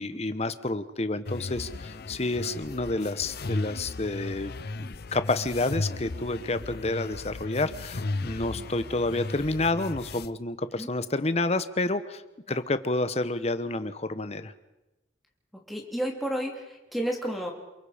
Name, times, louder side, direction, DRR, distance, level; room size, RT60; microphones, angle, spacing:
voice 1, 0.0-4.5 4.8-12.2 12.5-14.5, left 2 dB, 35° left, 12 dB, 1.0 m, -29 dB
sound 1, 1.3-10.3, left 2 dB, 55° left, 0.7 m, -36 dB
voice 2, 15.7-17.5, equal, ahead, 1 dB, 3.1 m, -31 dB
28.5 x 22.0 x 5.1 m, 1.0 s
head